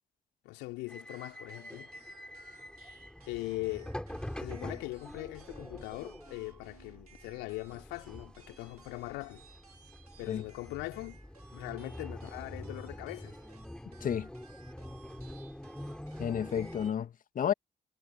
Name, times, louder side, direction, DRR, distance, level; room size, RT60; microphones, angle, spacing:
voice 1, 0.4-1.9 3.2-3.9 4.4-9.4 10.2-11.2 11.5-13.4 13.9-14.0, left 22 dB, 65° left, 3.5 m, -41 dB
sound 1, 0.9-16.9, left 1 dB, 5° left, 6.1 m, -46 dB
sound 2, 1.1-17.0, right 6 dB, 85° right, 5.3 m, -60 dB
voice 2, 16.2-17.5, left 8 dB, 45° left, 2.1 m, -31 dB
figure-of-eight pair, 40°, 19 cm